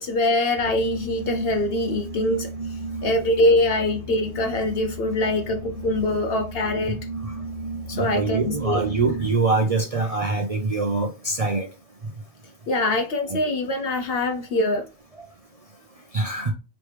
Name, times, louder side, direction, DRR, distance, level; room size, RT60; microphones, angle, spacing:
voice 1, 0.0-7.0 7.9-8.8 12.7-14.9, left 1 dB, 65° left, 0.6 m, -24 dB
sound 1, 0.6-9.3, right 2 dB, 40° left, 1.7 m, -34 dB
voice 2, 7.9-11.7 13.3-13.4 16.1-16.5, right 3 dB, 40° right, 0.5 m, -24 dB
4.8 x 3.2 x 3.1 m
omnidirectional pair, 1.3 m